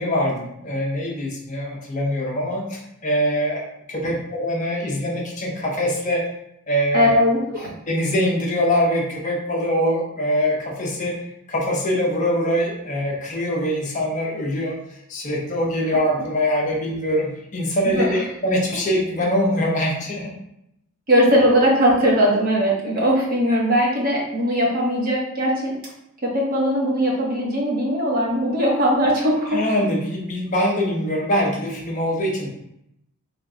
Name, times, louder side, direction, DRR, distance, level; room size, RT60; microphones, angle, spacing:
voice 1, 0.0-3.6 3.9-6.3 6.7-7.2 7.6-11.1 11.5-14.8 15.1-20.3 29.5-32.5, equal, 35° left, -2 dB, 0.7 m, -23 dB
voice 2, 6.9-7.7 17.8-18.2 21.1-25.7 26.2-29.6, equal, 40° right, -4 dB, 0.8 m, -19 dB
3.3 x 2.2 x 3.7 m, 0.78 s
head